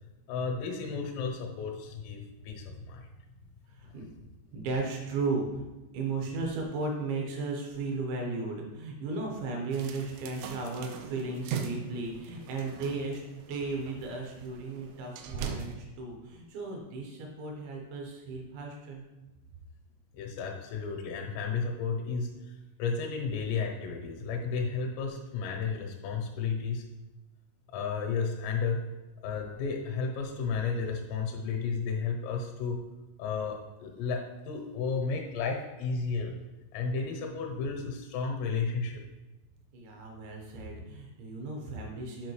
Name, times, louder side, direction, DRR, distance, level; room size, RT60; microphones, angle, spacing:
voice 1, 0.3-3.1 20.1-26.8 27.7-28.8 29.2-32.8 33.2-36.3 36.7-39.0, left 5 dB, 85° left, 1 dB, 3.5 m, -33 dB
voice 2, 3.7-4.1 4.5-5.6 5.9-19.0 39.7-42.3, right 3 dB, 75° right, 0 dB, 3.1 m, -35 dB
sound 1, 9.7-15.8, right 6 dB, 90° right, 3.2 m, -40 dB
9.3 x 5.0 x 3.1 m, 1.1 s
omnidirectional pair, 5.8 m